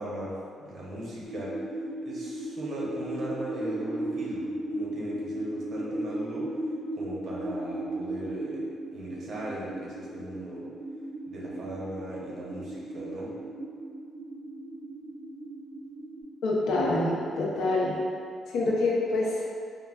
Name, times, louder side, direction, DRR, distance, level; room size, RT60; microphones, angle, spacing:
voice 1, 0.0-1.6 2.0-10.7 11.3-13.3, right 1 dB, 65° right, -5 dB, 0.8 m, -38 dB
sound 1, 1.2-16.2, right 1 dB, 90° right, 0.9 m, -36 dB
voice 2, 16.4-18.0 18.5-19.4, left 2 dB, 85° left, -4 dB, 0.6 m, -26 dB
3.7 x 2.2 x 2.3 m, 2.3 s
cardioid pair, 90°, 0 cm